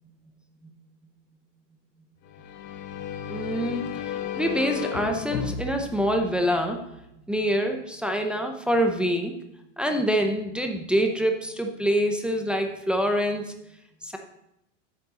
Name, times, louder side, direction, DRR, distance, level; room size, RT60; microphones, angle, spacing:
sound 1, 2.2-7.0, left 8 dB, 45° left, 1.1 m, -34 dB
voice 1, 3.3-6.8 7.3-9.3 9.8-13.5 14.0-14.2, equal, 5° right, 3 dB, 0.6 m, -25 dB
10.0 x 7.5 x 4.1 m, 0.83 s
supercardioid pair, 145°, 37 cm